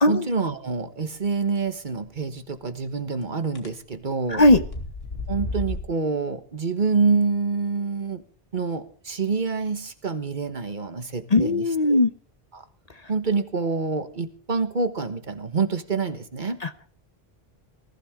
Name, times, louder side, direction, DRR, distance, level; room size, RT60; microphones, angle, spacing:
voice 1, 0.1-4.4 5.3-8.2 8.5-12.0 12.5-12.6 13.1-16.6, right 4 dB, 50° right, 9 dB, 1.4 m, -27 dB
sound 1, 2.1-2.2 3.6-3.8 4.3-5.9, left 2 dB, 75° left, 2.5 m, -32 dB
voice 2, 11.3-12.1 16.6-16.9, left 2 dB, 40° left, 10 dB, 1.0 m, -18 dB
20.0 x 15.0 x 3.6 m, 0.43 s
omnidirectional pair, 1.0 m